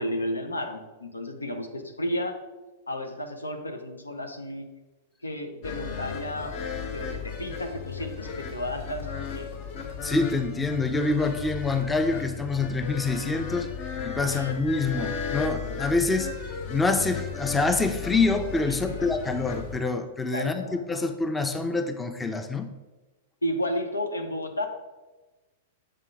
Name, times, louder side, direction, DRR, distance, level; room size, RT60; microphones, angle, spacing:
voice 1, 0.0-2.3 2.9-4.7 5.2-6.6 6.9-9.5 14.2-14.5 18.6-19.2 20.3-20.8 23.4-24.7, left 1 dB, 90° left, 5 dB, 0.7 m, -32 dB
sound 1, 5.6-19.8, left 6 dB, 45° left, 0.9 m, -35 dB
voice 2, 10.0-13.7 14.0-16.3 16.7-22.7, left 3 dB, 10° left, 6 dB, 0.5 m, -26 dB
6.7 x 3.7 x 4.8 m, 1.2 s
figure-of-eight pair, 105°, 0 cm